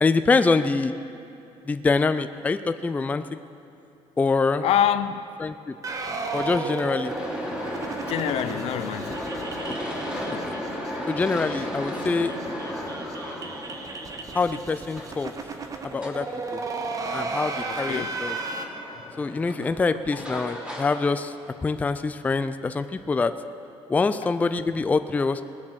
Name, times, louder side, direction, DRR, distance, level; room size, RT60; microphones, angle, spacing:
voice 1, 0.0-0.9 1.6-3.2 4.2-4.7 5.4-5.8 6.3-7.1 9.7-10.0 10.5-10.6 11.1-12.4 14.3-15.3 15.9-16.2 16.5-16.6 17.1-18.4 19.2-21.3 21.6-23.3 23.9-25.4, left 4 dB, 15° left, 11 dB, 0.3 m, -25 dB
voice 2, 4.6-5.2 8.1-9.2 17.7-18.1, left 10 dB, 70° left, 12 dB, 0.6 m, -25 dB
sound 1, 5.8-10.9 11.2-11.3 11.6-11.7 11.9-18.6, right 3 dB, 30° right, 1.0 m, -34 dB
sound 2, 7.0-21.8, equal, 10° right, 2.8 m, -35 dB
19.0 x 7.3 x 6.3 m, 2.8 s
cardioid pair, 135°, 11 cm